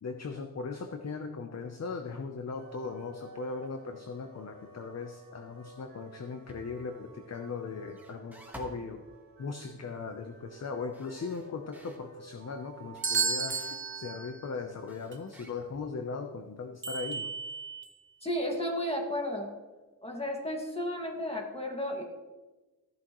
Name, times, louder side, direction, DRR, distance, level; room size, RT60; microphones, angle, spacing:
voice 1, 0.0-9.1 9.4-13.6 13.9-17.3, left 4 dB, 40° left, 5 dB, 0.7 m, -38 dB
sound 1, 2.6-14.2, right 4 dB, 60° right, 1.7 m, -52 dB
sound 2, 6.5-6.9 7.9-8.9 10.9-12.0 12.9-13.8 14.9-16.0, equal, 5° right, 1.4 m, -51 dB
sound 3, 9.4-9.5 13.0-14.5 15.1-15.2 16.8-18.0, right 5 dB, 30° right, 1.1 m, -33 dB
voice 2, 18.2-19.5 20.0-22.0, left 1 dB, 15° left, 0 dB, 1.9 m, -33 dB
15.0 x 11.5 x 3.1 m, 1.2 s
wide cardioid pair, 160°, 39 cm